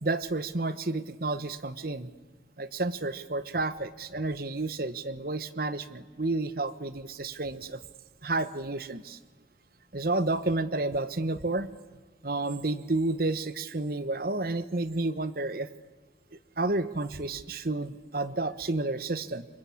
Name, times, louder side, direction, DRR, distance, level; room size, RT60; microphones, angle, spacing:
voice 1, 0.0-2.1 2.6-7.8 8.2-9.2 9.9-11.7 12.2-15.7 16.6-19.5, right 2 dB, 50° right, 13 dB, 1.1 m, -31 dB
27.5 x 24.5 x 8.6 m, 1.4 s
head